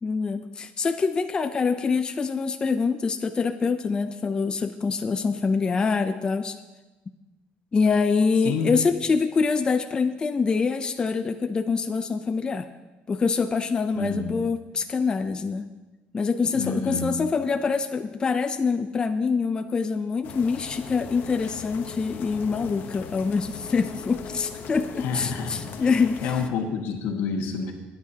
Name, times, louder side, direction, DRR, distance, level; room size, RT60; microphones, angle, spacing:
voice 1, 0.0-6.6 7.7-12.7 13.1-15.6 16.1-26.3, left 5 dB, 25° left, 8 dB, 0.5 m, -25 dB
voice 2, 13.9-14.4 16.5-17.1 25.0-27.7, left 5 dB, 85° left, 3 dB, 1.6 m, -29 dB
sound 1, 20.2-26.5, left 6 dB, 60° left, 0.9 m, -39 dB
19.5 x 9.7 x 2.8 m, 1.1 s
cardioid pair, 150°, 4 cm